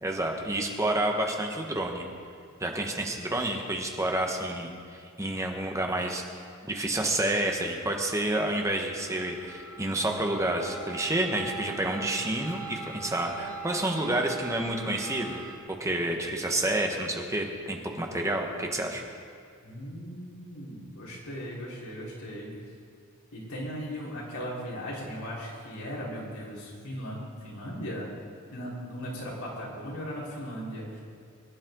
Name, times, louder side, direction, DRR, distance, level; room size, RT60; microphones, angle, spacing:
voice 1, 0.0-2.1 2.6-6.2 6.6-19.0, right 1 dB, 15° right, 2 dB, 1.4 m, -29 dB
sound 1, 7.5-15.6, right 5 dB, 75° right, 2.3 m, -42 dB
voice 2, 19.6-22.5 23.3-28.1 28.5-31.0, equal, 85° left, -5 dB, 4.3 m, -38 dB
23.5 x 11.0 x 3.9 m, 2.3 s
head